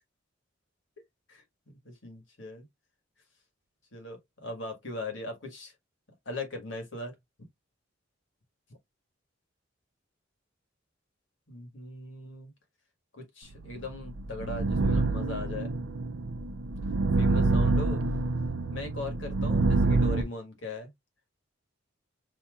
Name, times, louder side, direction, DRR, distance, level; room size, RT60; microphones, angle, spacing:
voice 1, 1.3-2.7 3.9-5.7 6.2-7.1 11.5-12.5 13.1-15.8 17.2-18.0 18.7-20.9, left 2 dB, 75° left, 1.7 m, -39 dB
sound 1, 13.8-20.2, right 3 dB, 85° right, 0.5 m, -27 dB
5.5 x 2.9 x 2.4 m
head